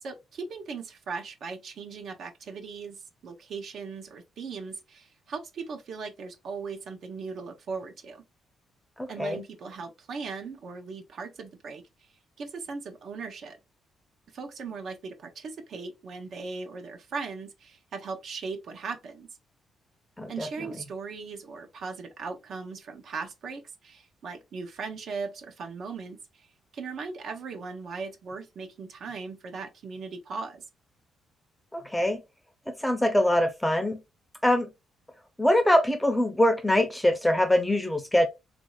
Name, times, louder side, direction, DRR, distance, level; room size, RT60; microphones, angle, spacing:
voice 1, 0.0-8.2 9.1-12.1 12.4-13.6 14.3-19.4 20.3-26.5 26.7-30.7, right 4 dB, 65° right, 0.8 m, -38 dB
voice 2, 9.0-9.4 20.2-20.5 31.7-32.2 32.8-34.0 34.4-34.7 35.4-38.3, left 1 dB, 5° left, 0.6 m, -23 dB
3.1 x 2.6 x 2.3 m
cardioid pair, 90°, 0 cm